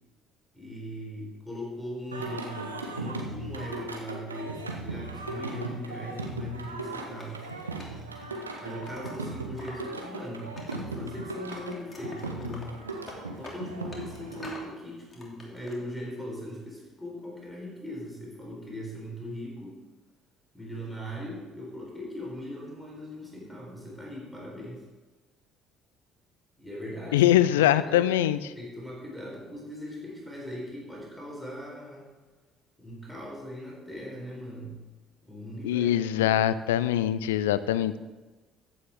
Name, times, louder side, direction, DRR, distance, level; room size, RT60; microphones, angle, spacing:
voice 1, 0.5-7.4 8.6-12.7 13.3-19.8 20.5-24.8 26.6-28.2 28.6-32.1 32.8-34.8 35.3-35.9, equal, 5° left, -3 dB, 4.2 m, -40 dB
Singing, 2.1-14.5, right 2 dB, 85° right, 0.9 m, -37 dB
Wood, 7.2-9.8 10.1-11.2 11.5-14.7 15.1-15.8, left 2 dB, 25° left, 2.8 m, -47 dB
voice 2, 27.1-28.4 35.6-38.0, left 12 dB, 70° left, 15 dB, 0.4 m, -23 dB
14.5 x 9.3 x 3.7 m, 1.2 s
figure-of-eight pair, 50°, 0 cm